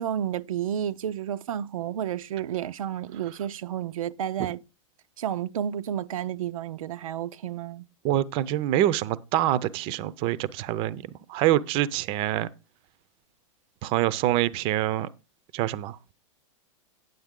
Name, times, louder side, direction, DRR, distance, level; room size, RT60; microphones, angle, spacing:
voice 1, 0.0-4.6 5.2-7.8, right 10 dB, 90° right, 0.5 m, -31 dB
voice 2, 8.0-11.0 11.3-12.5 13.8-15.1 15.5-16.1, right 13 dB, 30° right, 0.4 m, -25 dB
9.3 x 7.9 x 3.7 m
hypercardioid pair, 140°, 17 cm